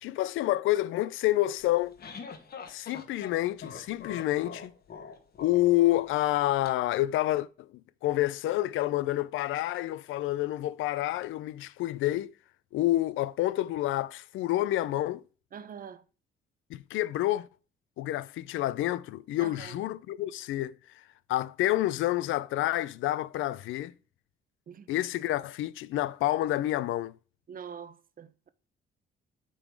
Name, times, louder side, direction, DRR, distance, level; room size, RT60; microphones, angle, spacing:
voice 1, 0.0-2.0 2.7-4.7 5.4-7.7 8.0-12.3 12.7-15.2 16.7-17.5 18.0-20.7 21.3-23.9 24.9-27.2, left 15 dB, 80° left, 0.4 m, -28 dB
sound 1, 1.6-6.7, left 5 dB, 50° left, 1.2 m, -44 dB
voice 2, 15.5-16.0 19.4-19.8 24.7-24.9 27.5-28.5, right 7 dB, 45° right, 0.7 m, -44 dB
8.9 x 3.9 x 4.6 m
cardioid pair, 90°, 20 cm